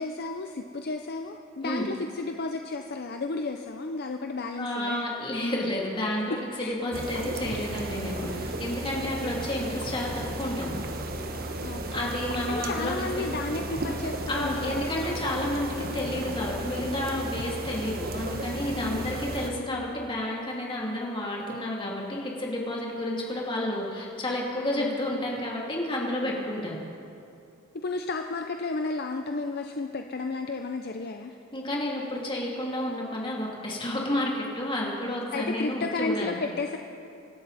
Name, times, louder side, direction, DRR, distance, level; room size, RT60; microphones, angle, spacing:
voice 1, 0.0-5.0 6.6-6.8 9.0-9.3 11.6-12.1 12.5-14.9 18.8-19.1 24.8-25.0 26.2-26.5 27.8-31.3 35.3-36.8, left 3 dB, 50° left, 5 dB, 0.6 m, -33 dB
voice 2, 4.6-10.8 11.9-13.3 14.3-26.8 31.5-36.4, left 1 dB, 25° left, -3 dB, 2.8 m, -31 dB
sound 1, 6.9-19.5, right 1 dB, 45° right, 1.1 m, -34 dB
25.5 x 12.0 x 4.1 m, 2.6 s
head